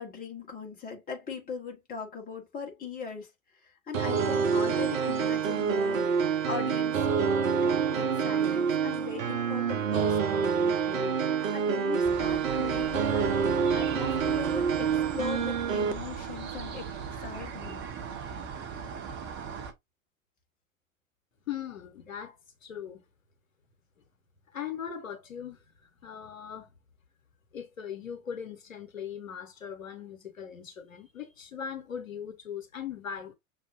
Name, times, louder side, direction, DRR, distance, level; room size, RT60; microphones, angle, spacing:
voice 1, 0.0-6.1 6.5-13.4 13.7-16.9 17.2-17.9, left 5 dB, 20° left, 1.5 m, -39 dB
sound 1, 3.9-15.9, right 6 dB, 75° right, 0.8 m, -27 dB
sound 2, 12.0-19.7, right 6 dB, 30° right, 0.8 m, -39 dB
voice 2, 21.5-23.0 24.5-25.6 26.0-26.7 27.5-33.3, left 8 dB, 75° left, 1.4 m, -39 dB
6.3 x 3.1 x 2.6 m
figure-of-eight pair, 90°, 40 cm